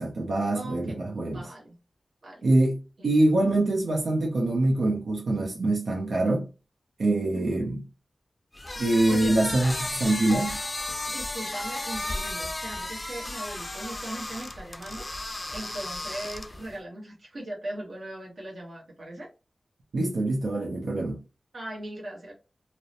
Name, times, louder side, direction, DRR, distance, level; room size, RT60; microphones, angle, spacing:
voice 1, 0.0-1.4 2.4-2.8 3.0-6.5 7.0-7.8 8.8-10.6 19.9-21.2, right 2 dB, 90° right, 0.5 m, -24 dB
voice 2, 0.5-1.0 1.3-1.8 2.2-2.5 3.0-3.1 7.3-7.7 8.6-8.8 9.1-9.3 11.1-15.0 15.5-19.3 21.5-22.3, right 1 dB, 60° right, 0.9 m, -39 dB
sound 1, 8.5-16.7, left 1 dB, 25° left, 0.4 m, -34 dB
2.7 x 2.0 x 2.5 m
wide cardioid pair, 70°, 0 cm